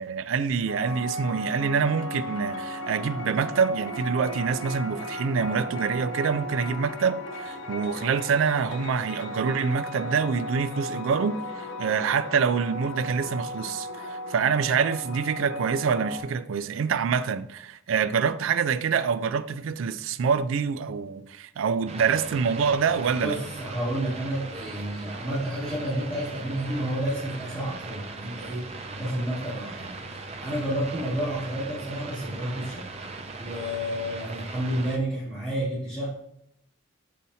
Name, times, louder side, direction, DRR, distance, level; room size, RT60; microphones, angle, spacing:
voice 1, 0.0-23.4, right 6 dB, 80° right, 0.4 m, -26 dB
sound 1, 0.7-16.2, left 1 dB, 70° left, 0.8 m, -36 dB
sound 2, 21.9-35.0, right 3 dB, 30° right, 0.6 m, -39 dB
voice 2, 23.2-32.8 33.4-36.1, right 1 dB, 5° left, 2.6 m, -30 dB
7.3 x 5.5 x 2.7 m
head